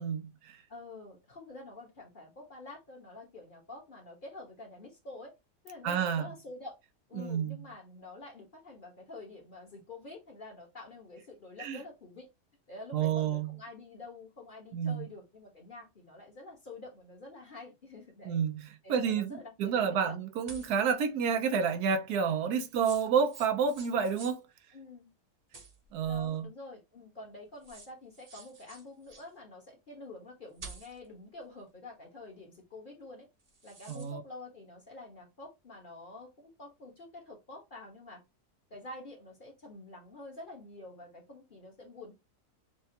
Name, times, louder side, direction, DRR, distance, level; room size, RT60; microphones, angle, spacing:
voice 1, 0.0-0.6 5.8-6.3 7.2-7.6 11.6-11.8 12.9-13.5 14.7-15.0 18.2-18.6 18.9-24.4 25.9-26.5 33.9-34.2, right 7 dB, 85° right, 1.2 m, -29 dB
voice 2, 0.7-5.3 5.6-6.8 7.1-12.3 12.7-18.4 18.8-20.2 24.7-25.1 26.1-33.3 33.6-38.2 38.7-42.1, left 2 dB, 35° left, 1.3 m, -48 dB
sound 1, 20.5-20.9 22.6-24.4 25.5-26.3 27.3-27.4 27.6-29.3 30.6-31.1 33.4-34.1, right 4 dB, 30° right, 0.8 m, -50 dB
6.6 x 2.3 x 2.8 m
omnidirectional pair, 1.6 m